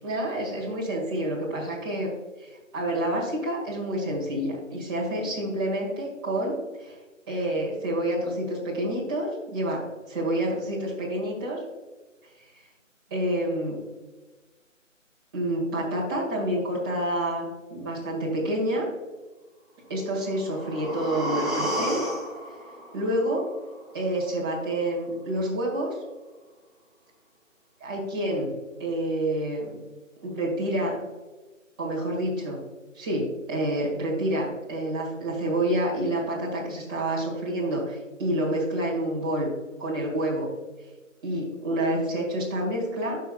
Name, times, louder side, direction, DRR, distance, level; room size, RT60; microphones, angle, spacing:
voice 1, 0.0-2.1 2.4-7.0 7.3-9.8 10.1-11.6 13.1-13.8 15.3-17.5 17.7-18.9 19.9-22.0 22.9-23.4 23.9-26.0 27.8-28.5 28.8-29.8 30.2-31.0 31.8-32.6 33.0-39.5 39.8-40.5 41.2-43.2, right 1 dB, 15° right, -5 dB, 1.9 m, -28 dB
sound 1, 20.1-24.1 24.5-24.6, right 1 dB, ahead, 0.4 m, -32 dB
12.5 x 5.6 x 2.3 m, 1.2 s
figure-of-eight pair, 165°, 39 cm